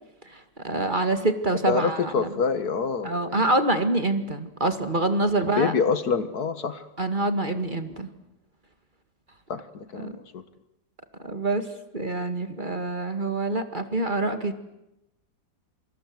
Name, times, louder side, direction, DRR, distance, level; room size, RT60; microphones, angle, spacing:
voice 1, 0.2-2.3 3.0-5.7 7.0-8.1 10.0-10.2 11.2-11.7 11.9-14.6, right 2 dB, 30° right, 9 dB, 2.2 m, -26 dB
voice 2, 1.7-3.5 5.3-6.9 9.5-10.4, left 5 dB, 65° left, 12 dB, 1.9 m, -27 dB
27.5 x 25.5 x 7.9 m, 0.88 s
omnidirectional pair, 1.8 m